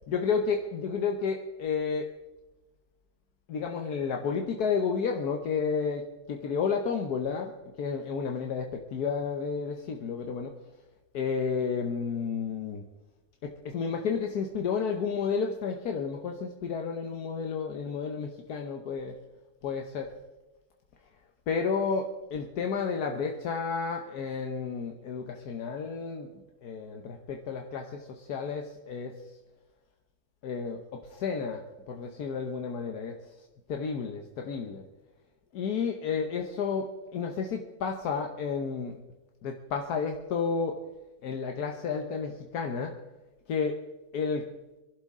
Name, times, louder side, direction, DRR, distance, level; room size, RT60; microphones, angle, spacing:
voice 1, 0.1-2.1 3.5-7.5 7.8-10.5 11.1-12.8 13.4-19.1 19.6-20.1 21.5-29.1 30.4-31.6 31.9-33.1 33.7-34.8 35.5-38.9 39.4-40.8 41.2-43.0 43.5-43.8 44.1-44.5, left 5 dB, 80° left, 3 dB, 1.5 m, -31 dB
24.5 x 11.5 x 3.7 m, 1.1 s
omnidirectional pair, 1.6 m